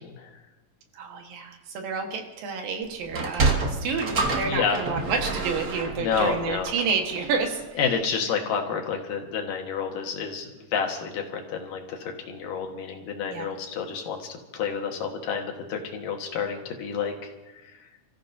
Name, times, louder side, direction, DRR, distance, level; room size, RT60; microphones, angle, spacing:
voice 1, 0.9-7.8 13.3-13.5, right 5 dB, 85° right, 3 dB, 3.4 m, -30 dB
Sliding door, 3.0-7.7, right 3 dB, 50° right, 1.1 m, -28 dB
voice 2, 4.4-4.8 6.0-6.7 7.8-17.3, left 6 dB, 75° left, 3 dB, 3.2 m, -29 dB
29.5 x 14.5 x 2.8 m, 1.1 s
omnidirectional pair, 3.9 m